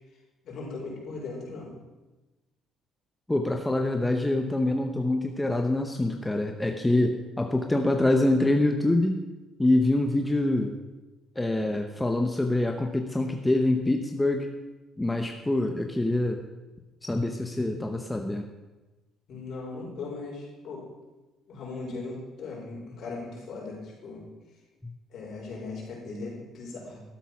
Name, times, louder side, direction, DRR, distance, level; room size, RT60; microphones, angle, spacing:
voice 1, 0.4-1.7 19.3-20.8 21.5-24.2 25.1-27.0, left 3 dB, 55° left, -4 dB, 5.3 m, -38 dB
voice 2, 3.3-9.2 9.6-10.7 11.4-14.5 15.0-16.4 17.0-18.5 24.8-24.9, left 2 dB, 10° left, 4 dB, 0.8 m, -25 dB
13.0 x 8.0 x 6.0 m, 1.1 s
cardioid pair, 125°, 0 cm